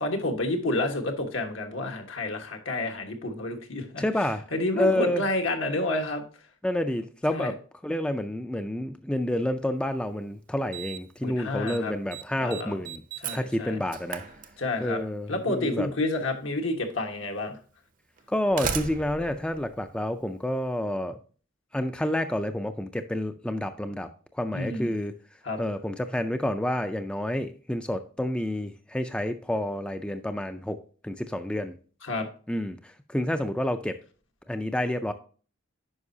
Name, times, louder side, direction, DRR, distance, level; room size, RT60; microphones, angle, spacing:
voice 1, 0.0-4.0 4.5-6.2 7.3-7.5 11.2-11.9 12.4-12.8 13.2-13.8 14.6-15.0 15.3-17.6 24.5-25.0 25.4-25.6 32.0-32.3, left 2 dB, 80° left, 1.3 m, -29 dB
voice 2, 4.0-4.4 4.8-5.2 6.6-7.5 7.8-13.0 13.3-14.2 14.8-15.9 18.3-21.2 21.7-24.1 24.4-25.1 25.6-31.7 32.5-34.0 34.5-35.1, left 1 dB, 5° left, 0.3 m, -29 dB
Slam, 9.9-10.0 10.7-11.2 11.5-11.8 12.1-15.0 16.2-16.3 17.1-17.2 18.2-20.5, right 6 dB, 40° right, 0.6 m, -37 dB
9.7 x 5.3 x 2.7 m
head